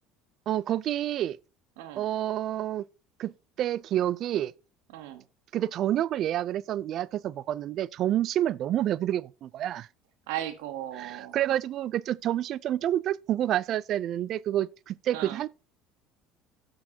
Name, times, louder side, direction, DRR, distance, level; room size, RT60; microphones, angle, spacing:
voice 1, 0.5-1.4 2.0-2.8 3.2-3.3 3.6-4.5 5.5-9.9 11.0-15.5, right 12 dB, 55° right, 0.3 m, -28 dB
voice 2, 1.8-2.1 4.9-5.2 10.3-11.4 15.1-15.4, right 12 dB, 85° right, 1.1 m, -36 dB
15.0 x 6.3 x 2.7 m
supercardioid pair, 100°, 0 cm